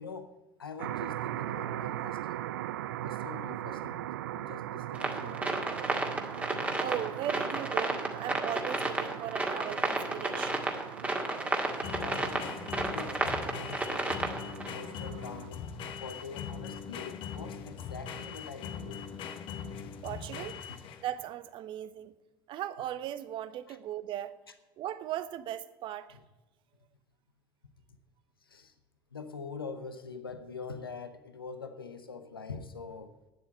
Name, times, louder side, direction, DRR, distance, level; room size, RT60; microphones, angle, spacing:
voice 1, 0.0-2.4 3.0-4.0 4.3-5.7 12.0-12.5 12.7-14.3 14.7-15.6 16.0-19.0 20.7-20.8 23.7-23.8 28.5-28.7 29.1-33.1, left 5 dB, 85° left, 0.9 m, -44 dB
sound 1, 0.8-15.5, right 13 dB, 70° right, 0.4 m, -40 dB
sound 2, 4.9-14.7, right 2 dB, 10° right, 1.9 m, -32 dB
voice 2, 6.8-10.7 20.0-20.6 21.0-22.1 22.5-24.4 24.8-26.2, right 11 dB, 45° right, 0.8 m, -38 dB
sound 3, 9.6-21.2, left 7 dB, 45° left, 1.0 m, -41 dB
9.5 x 7.7 x 8.9 m
figure-of-eight pair, 70°, 12 cm